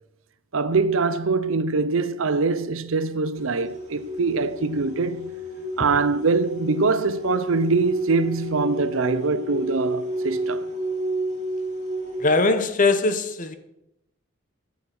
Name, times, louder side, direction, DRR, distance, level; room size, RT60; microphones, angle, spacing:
voice 1, 0.5-5.3 5.8-10.7, right 4 dB, 80° right, 0.7 m, -23 dB
sound 1, 3.4-12.5, right 1 dB, 35° right, 2.7 m, -31 dB
voice 2, 12.2-13.5, left 3 dB, 40° left, 0.9 m, -21 dB
14.0 x 5.7 x 6.0 m
head